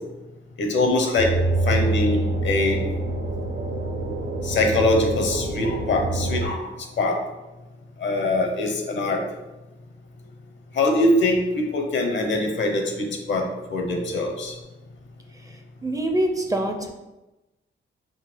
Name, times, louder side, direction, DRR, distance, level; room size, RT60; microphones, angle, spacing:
voice 1, 0.6-1.3 1.7-2.8 4.4-6.6 7.0-7.2 8.0-9.2 10.7-13.4 13.7-14.5, left 2 dB, 65° left, 2 dB, 0.8 m, -23 dB
sound 1, 1.2-6.5, right 2 dB, 70° right, 0.6 m, -26 dB
voice 2, 15.4-16.9, right 1 dB, 15° right, 4 dB, 0.4 m, -26 dB
3.8 x 2.4 x 4.4 m, 1.0 s
cardioid pair, 95°, 21 cm